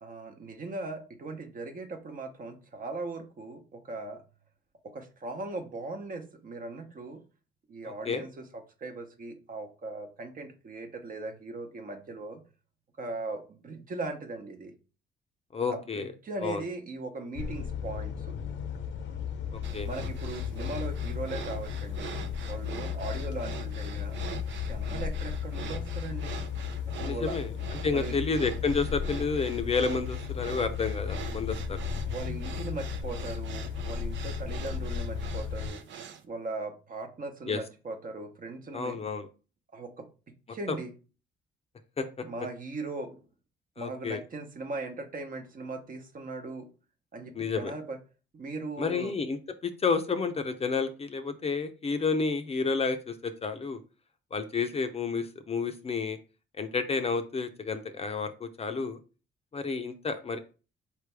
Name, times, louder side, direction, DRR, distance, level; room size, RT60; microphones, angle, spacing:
voice 1, 0.0-4.2 4.8-7.2 7.7-8.5 8.8-12.4 13.0-14.7 15.7-18.4 19.8-22.1 22.5-24.2 24.6-26.4 27.0-27.4 27.9-28.2 32.1-35.8 36.2-39.0 39.7-40.1 40.5-40.9 42.2-43.3 43.8-46.7 47.1-48.0 48.3-49.1, right 3 dB, 45° right, 5 dB, 1.0 m, -39 dB
voice 2, 7.8-8.2 15.5-16.1 16.4-16.6 19.5-19.9 27.0-27.5 27.8-31.8 37.5-37.6 38.7-39.3 42.0-42.2 43.8-44.2 47.4-47.7 48.8-49.4 49.6-53.8 54.3-56.2 56.6-59.0 59.5-60.4, left 4 dB, 30° left, 8 dB, 0.5 m, -30 dB
sound 1, 17.4-35.7, left 7 dB, 70° left, 0.7 m, -35 dB
sound 2, 19.6-36.2, right 7 dB, 70° right, 0.6 m, -44 dB
4.4 x 3.3 x 3.3 m, 0.34 s
cardioid pair, 90°, 20 cm